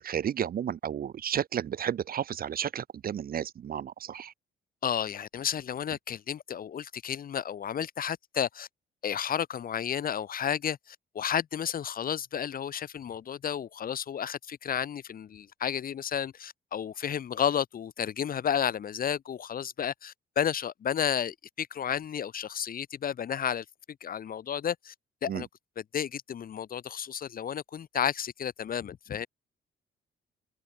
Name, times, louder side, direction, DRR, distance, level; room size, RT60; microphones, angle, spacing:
voice 1, 0.0-4.3 25.3-25.4, right 9 dB, 50° right, 0.6 m, -32 dB
voice 2, 4.8-8.7 9.0-23.6 24.0-24.9 25.2-25.5 25.8-29.3, left 8 dB, 45° left, 0.8 m, -32 dB
open air
cardioid pair, 90°, 20 cm